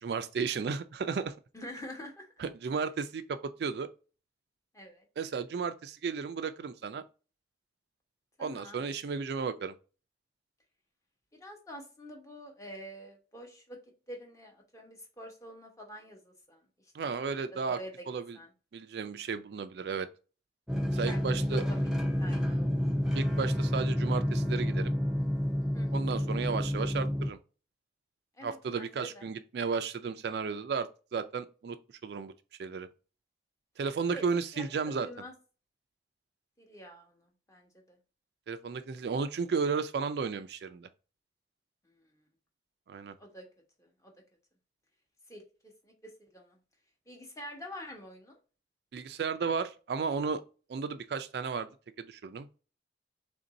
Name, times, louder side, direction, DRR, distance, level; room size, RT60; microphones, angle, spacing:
voice 1, 0.0-1.3 2.4-3.9 5.2-7.0 8.4-9.7 16.9-17.8 18.1-18.4 18.7-20.1 20.9-21.6 23.1-24.9 25.9-27.4 28.4-31.8 32.0-32.3 32.6-32.9 33.8-35.1 38.5-40.9 42.9-43.1 48.9-50.4 50.7-51.7 52.0-52.5, right 5 dB, 65° right, 0.3 m, -34 dB
voice 2, 1.5-2.3 4.7-5.0 8.4-8.8 11.4-13.8 14.1-16.6 17.0-17.1 17.5-18.1 18.3-18.5 21.0-22.7 25.7-26.1 28.4-29.2 34.1-34.2 34.5-35.3 36.6-38.0 42.0-42.1 43.2-43.4 43.8-44.1 45.3-46.6 47.1-48.4, equal, 20° left, 0.9 m, -47 dB
sound 1, 20.7-27.3, equal, 5° right, 0.5 m, -29 dB
3.6 x 2.6 x 3.9 m
head